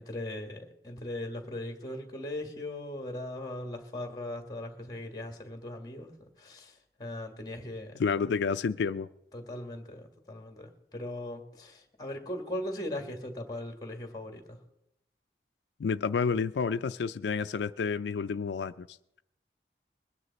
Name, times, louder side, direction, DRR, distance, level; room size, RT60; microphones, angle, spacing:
voice 1, 0.0-8.0 9.3-14.6, left 1 dB, 20° left, 1.8 m, -39 dB
voice 2, 8.0-9.1 15.8-19.2, left 5 dB, 85° left, 0.4 m, -30 dB
21.5 x 9.7 x 4.1 m
head